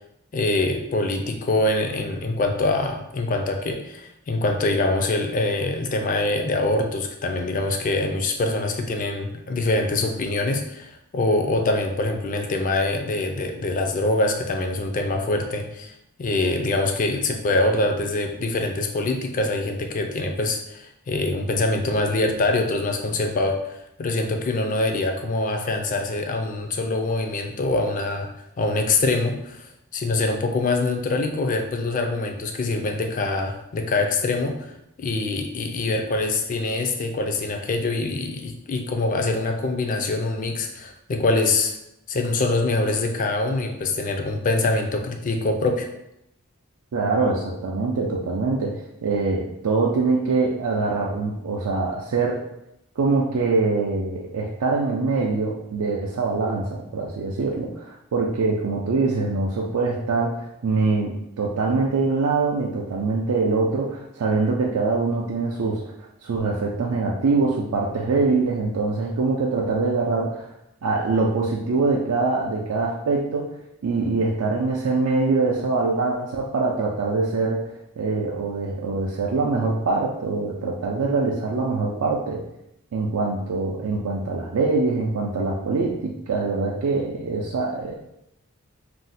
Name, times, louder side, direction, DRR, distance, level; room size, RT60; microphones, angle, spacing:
voice 1, 0.3-15.9 16.2-28.3 28.6-34.6 35.0-41.7 42.1-45.9, left 2 dB, 40° left, 4 dB, 0.3 m, -24 dB
voice 2, 46.9-52.4 53.0-65.8 66.2-70.5 70.8-73.5 73.8-82.4 82.9-88.0, right 3 dB, 85° right, -2 dB, 0.4 m, -24 dB
2.5 x 2.1 x 3.9 m, 0.83 s
head